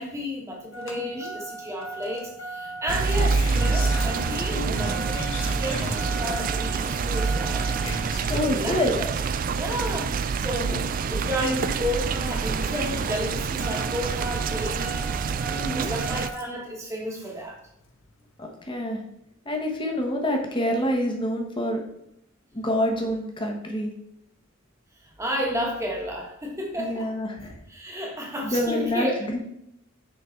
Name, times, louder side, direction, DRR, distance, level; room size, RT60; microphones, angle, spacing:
voice 1, 0.0-5.2 5.5-7.7 8.5-9.2 9.5-10.7 11.1-15.1 15.8-17.6 25.0-27.1 27.7-29.3, equal, 15° right, -1 dB, 1.4 m, -32 dB
Engine starting, 0.7-16.6 17.9-18.0, equal, 85° left, 1.1 m, -37 dB
sound 1, 2.9-16.3, right 5 dB, 45° right, 0.3 m, -27 dB
voice 2, 4.5-4.8 8.3-8.9 10.7-10.8 11.4-11.6 15.5-15.9 18.4-19.0 19.4-21.9 22.5-23.9 26.8-27.6 28.4-29.4, equal, 25° left, 2 dB, 1.1 m, -27 dB
6.6 x 3.9 x 4.5 m, 0.77 s
head